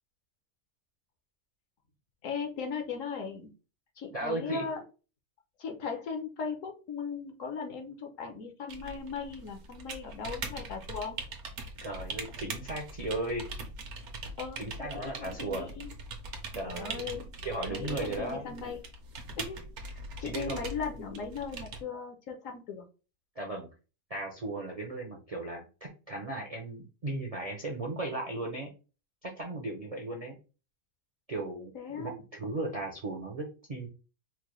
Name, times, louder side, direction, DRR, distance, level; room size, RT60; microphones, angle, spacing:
voice 1, 2.2-3.5 4.0-4.8 5.6-11.2 14.4-15.9 16.6-17.3 17.7-18.8 19.4-19.6 19.9-22.8 31.7-32.2, left 5 dB, 65° left, 4 dB, 1.1 m, -38 dB
voice 2, 4.1-4.6 11.8-13.5 14.6-15.7 16.5-17.0 17.4-18.4 20.2-20.7 23.4-23.7 24.1-28.7 29.2-30.4 31.3-31.7 32.0-33.9, right 2 dB, 45° right, 0 dB, 0.5 m, -36 dB
sound 1, 8.7-21.8, right 3 dB, 75° right, 1.2 m, -41 dB
4.7 x 2.2 x 3.0 m, 0.32 s
omnidirectional pair, 1.6 m